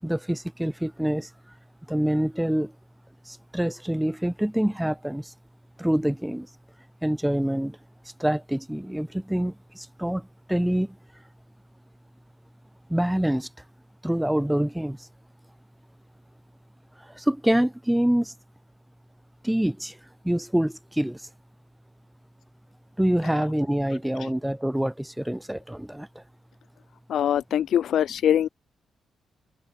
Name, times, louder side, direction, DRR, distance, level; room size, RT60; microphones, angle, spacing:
voice 1, 0.0-1.3 1.9-2.7 3.3-5.3 5.8-6.5 7.0-7.8 8.2-11.0 12.9-13.5 14.0-15.1 17.0-18.3 19.4-20.0 20.2-21.3 23.0-26.2, right 1 dB, 5° right, 5.8 m, -26 dB
voice 2, 27.1-28.5, left 10 dB, 75° left, 1.2 m, -22 dB
supercardioid pair, 55°, 0 cm